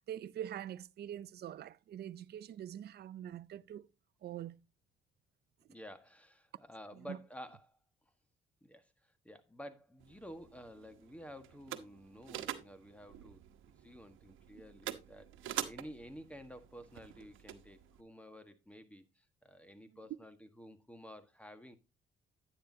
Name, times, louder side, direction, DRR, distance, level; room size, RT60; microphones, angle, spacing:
voice 1, 0.0-3.9 4.2-4.6 6.9-7.2, right 11 dB, 55° right, 0.5 m, -44 dB
voice 2, 5.7-7.8 8.6-13.4 13.8-21.8, equal, 5° left, 1.5 m, -52 dB
sound 1, 10.0-18.0, right 12 dB, 80° right, 1.1 m, -46 dB
10.0 x 9.8 x 2.8 m
cardioid pair, 90°, 20 cm